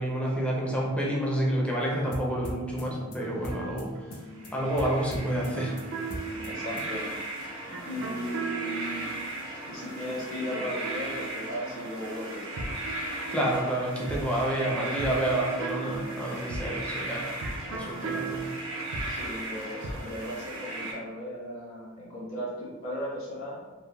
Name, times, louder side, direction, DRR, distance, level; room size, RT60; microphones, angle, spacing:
voice 1, 0.0-3.9 4.5-5.7 13.3-17.3 17.7-18.4, right 1 dB, 5° left, -3 dB, 0.4 m, -29 dB
sound 1, 1.8-7.0, left 1 dB, 85° left, 0.5 m, -41 dB
sound 2, 3.2-12.0 12.3-20.1, right 4 dB, 65° right, 0.4 m, -39 dB
sound 3, 4.3-20.9, right 1 dB, 80° right, 0.8 m, -37 dB
voice 2, 6.5-7.1 7.7-9.1 9.7-12.6 17.9-18.1 19.0-23.6, equal, 65° left, -6 dB, 1.0 m, -36 dB
3.2 x 2.1 x 2.2 m, 1.2 s
head